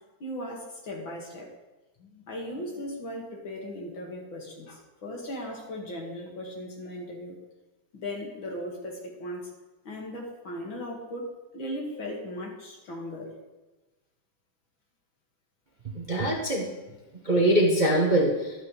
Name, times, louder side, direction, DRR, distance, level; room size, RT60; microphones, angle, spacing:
voice 1, 0.2-1.5 2.0-7.4 7.9-9.5 9.8-13.3, left 1 dB, 60° left, -1 dB, 2.9 m, -37 dB
voice 2, 15.9-16.7 17.2-18.5, right 1 dB, 30° right, -1 dB, 0.9 m, -23 dB
12.5 x 12.5 x 3.3 m, 1.1 s
omnidirectional pair, 2.4 m